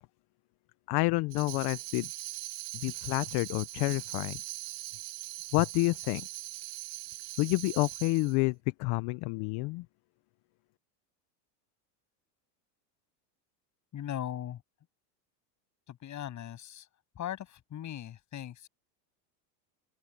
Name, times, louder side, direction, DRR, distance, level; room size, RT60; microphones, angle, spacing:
voice 1, 0.9-2.1 2.7-4.4 5.5-6.3 7.4-9.8, left 24 dB, 55° left, 0.8 m, -29 dB
Tambourine, 1.3-8.4, right 18 dB, 50° right, 2.7 m, -41 dB
voice 2, 13.9-14.6 15.9-16.9 17.1-18.7, left 11 dB, 35° left, 7.7 m, -39 dB
open air
supercardioid pair, 130°, 49 cm